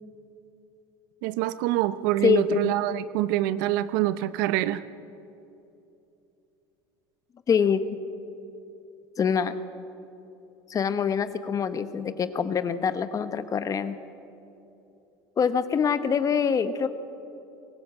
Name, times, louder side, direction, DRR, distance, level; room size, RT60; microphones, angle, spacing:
voice 1, 1.2-4.8, right 14 dB, 80° right, 14 dB, 0.6 m, -25 dB
voice 2, 2.2-2.7 7.5-7.8 9.2-9.5 10.7-14.0 15.4-16.9, left 6 dB, 35° left, 11 dB, 1.0 m, -25 dB
22.5 x 14.0 x 8.3 m, 2.8 s
supercardioid pair, 110°, 10 cm